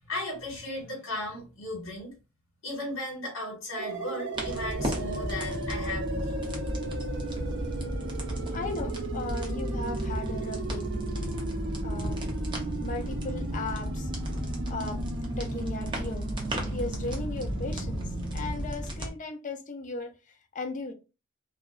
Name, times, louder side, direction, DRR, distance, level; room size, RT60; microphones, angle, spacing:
voice 1, 0.1-2.1 2.6-6.4, left 1 dB, 80° left, 1.3 m, -36 dB
sound 1, 3.7-18.6, right 3 dB, 60° right, 0.5 m, -36 dB
sound 2, 4.3-19.1, equal, 25° right, 0.6 m, -34 dB
voice 2, 8.5-10.9 11.8-12.2 12.8-14.1 14.7-15.0 15.4-20.1 20.5-20.9, left 3 dB, 40° left, 0.4 m, -37 dB
2.7 x 2.4 x 2.3 m
head